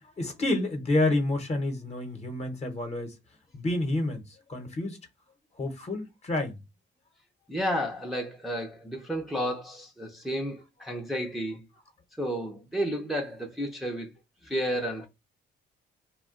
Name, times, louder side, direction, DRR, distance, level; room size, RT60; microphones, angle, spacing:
voice 1, 0.2-3.2 3.5-5.0 5.6-6.6, left 2 dB, 35° left, 0.9 m, -29 dB
voice 2, 7.5-11.6 12.2-14.1 14.4-15.1, equal, ahead, 0.6 m, -32 dB
2.3 x 2.2 x 3.7 m
cardioid pair, 90°, 20 cm